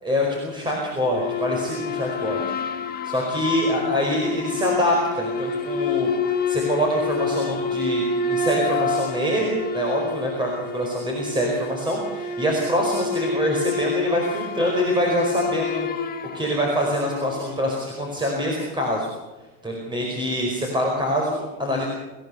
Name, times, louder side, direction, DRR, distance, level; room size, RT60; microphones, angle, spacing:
voice 1, 0.0-2.4 3.0-6.1 6.5-15.9 16.3-19.1 19.6-21.9, equal, 10° right, -1 dB, 4.9 m, -25 dB
sound 1, 1.0-17.6, left 4 dB, 20° left, 1.7 m, -28 dB
26.5 x 16.0 x 7.0 m, 1.1 s
supercardioid pair, 140°, 45 cm